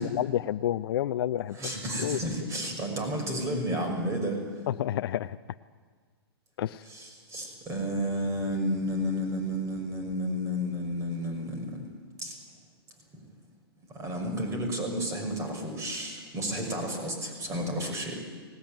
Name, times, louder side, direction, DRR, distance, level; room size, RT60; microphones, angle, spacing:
voice 1, 0.0-1.6 2.0-2.2 4.7-5.4 6.6-6.8, left 11 dB, 60° left, 11 dB, 0.5 m, -29 dB
voice 2, 1.5-4.5 6.8-11.9 12.2-12.4 13.9-18.2, equal, 20° right, 4 dB, 6.0 m, -31 dB
19.5 x 18.5 x 9.1 m, 1.5 s
hypercardioid pair, 125°, 14 cm